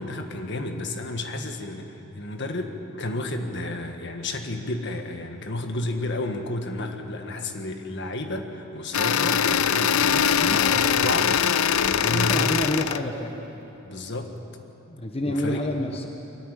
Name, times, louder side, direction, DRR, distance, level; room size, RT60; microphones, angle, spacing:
voice 1, 0.0-12.4 13.8-14.3 15.2-15.7, left 2 dB, 55° left, 5 dB, 1.7 m, -31 dB
sound 1, 8.9-13.0, left 8 dB, 80° left, 0.6 m, -22 dB
voice 2, 10.4-10.9 11.9-13.5 14.9-16.1, left 1 dB, 30° left, 2 dB, 1.2 m, -29 dB
23.0 x 14.0 x 9.9 m, 3.0 s
head